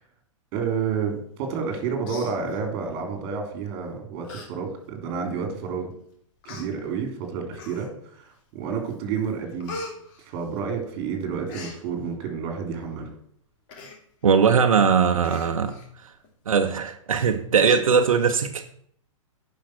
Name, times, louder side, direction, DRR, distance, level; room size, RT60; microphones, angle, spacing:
voice 1, 0.5-5.9 6.4-9.8 10.3-13.1, right 6 dB, 40° right, 3.2 m, -30 dB
Human voice, 1.6-1.7 2.0-2.9 3.7-3.8 4.2-4.5 4.9-5.0 5.8-5.9 6.4-6.7 7.5-8.1 8.6-8.9 9.2-10.9 11.2-11.8 13.7-14.0 14.4-14.5 14.7-14.9 15.2-15.9 16.2-16.3, left 3 dB, 40° left, 2.4 m, -40 dB
voice 2, 14.2-16.1 16.5-18.6, right 6 dB, 90° right, 0.9 m, -20 dB
10.5 x 5.6 x 6.1 m
hypercardioid pair, 135°, 17 cm